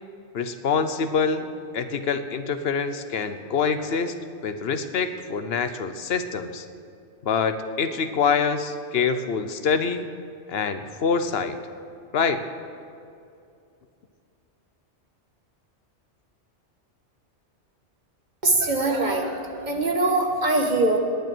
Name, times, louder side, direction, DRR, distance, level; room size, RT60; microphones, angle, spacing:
voice 1, 0.3-1.5 1.7-4.2 4.4-6.6 7.2-10.1 10.5-11.6 12.1-12.4, left 5 dB, 60° left, 10 dB, 1.1 m, -25 dB
voice 2, 18.4-21.0, right 2 dB, 40° right, 3 dB, 1.5 m, -22 dB
20.0 x 9.2 x 6.2 m, 2.5 s
omnidirectional pair, 1.2 m